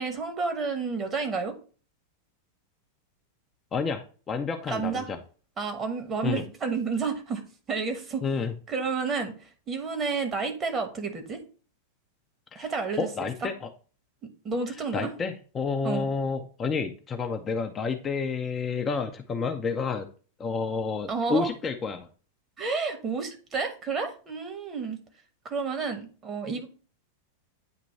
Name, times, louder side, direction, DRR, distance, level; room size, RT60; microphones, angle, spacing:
voice 1, 0.0-1.5 4.7-5.1 5.6-7.4 7.7-8.2 8.7-9.3 9.7-11.4 12.5-13.1 14.2-15.1 15.8-16.1 21.1-21.5 22.6-25.0 25.4-26.7, right 4 dB, 25° right, 6 dB, 1.3 m, -30 dB
voice 2, 3.7-5.2 6.2-6.4 8.2-8.5 12.5-12.7 13.0-13.7 14.9-20.1 20.4-22.1, left 5 dB, 20° left, 4 dB, 0.6 m, -30 dB
9.0 x 3.0 x 4.1 m, 0.39 s
figure-of-eight pair, 90°, 0 cm